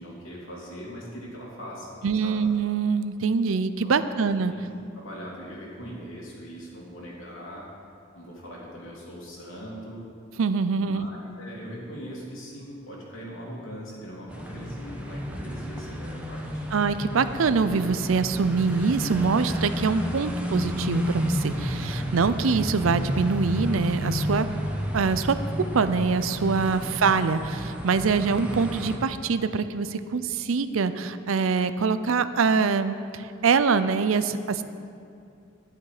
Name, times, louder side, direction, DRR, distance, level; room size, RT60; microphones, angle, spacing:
voice 1, 0.0-2.4 3.8-4.2 4.5-4.6 4.9-7.6 8.1-10.1 10.8-16.6, equal, 75° left, -4 dB, 2.8 m, -41 dB
voice 2, 2.0-4.5 10.4-11.1 16.7-24.5 24.9-34.6, right 5 dB, 80° right, 12 dB, 0.5 m, -24 dB
sound 1, 14.3-29.0, equal, 5° right, 0.9 m, -31 dB
10.5 x 10.5 x 4.9 m, 2.5 s
head